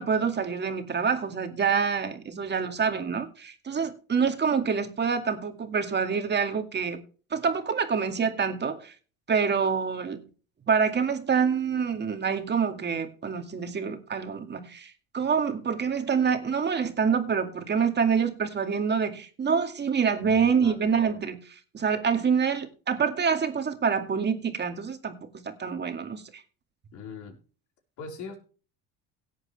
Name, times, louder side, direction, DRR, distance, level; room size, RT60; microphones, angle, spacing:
voice 1, 0.0-7.0 7.3-8.9 9.3-10.2 10.7-21.4 21.7-26.2, right 6 dB, 30° right, 2.2 m, -26 dB
voice 2, 20.2-20.9 26.9-27.4 28.0-28.4, left 4 dB, 60° left, 4.8 m, -41 dB
17.5 x 8.0 x 3.4 m
supercardioid pair, 90°, 33 cm